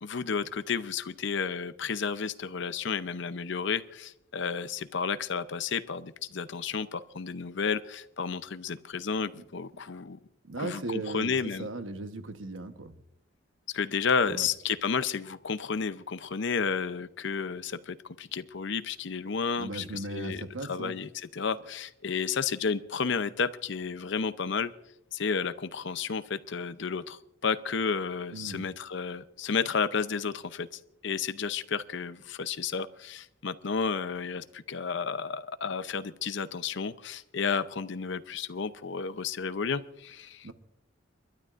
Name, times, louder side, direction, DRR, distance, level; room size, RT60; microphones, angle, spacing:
voice 1, 0.0-10.2 10.6-11.7 13.7-24.7 25.1-40.5, left 5 dB, 65° left, 13 dB, 0.7 m, -32 dB
voice 2, 10.4-12.9 14.3-14.5 19.6-20.9 28.3-28.6 40.4-40.5, right 2 dB, 80° right, 8 dB, 1.1 m, -37 dB
30.0 x 12.5 x 2.5 m, 0.79 s
head